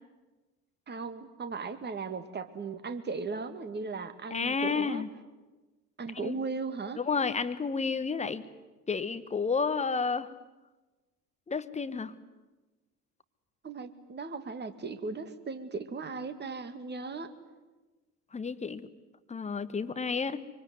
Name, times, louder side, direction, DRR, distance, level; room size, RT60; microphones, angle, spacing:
voice 1, 0.9-5.0 6.0-7.0 13.6-17.3, right 4 dB, 20° right, 10 dB, 2.3 m, -37 dB
voice 2, 4.3-5.1 6.2-6.4 7.0-8.4 8.9-10.3 11.5-12.1 18.3-18.9 19.3-20.4, left 5 dB, 15° left, 14 dB, 1.3 m, -31 dB
25.0 x 24.0 x 9.7 m, 1.2 s
figure-of-eight pair, 70°, 46 cm